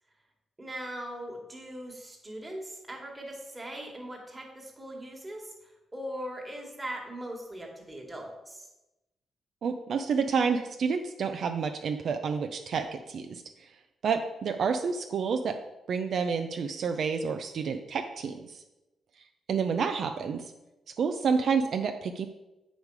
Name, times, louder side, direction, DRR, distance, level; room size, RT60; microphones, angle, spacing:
voice 1, 0.6-8.7, equal, 15° right, 0 dB, 1.7 m, -40 dB
voice 2, 9.6-13.7 14.0-15.6 15.9-18.6 19.5-20.5 21.0-22.3, right 5 dB, 60° right, 6 dB, 0.5 m, -29 dB
8.1 x 5.1 x 4.8 m, 0.99 s
cardioid pair, 140°, 0 cm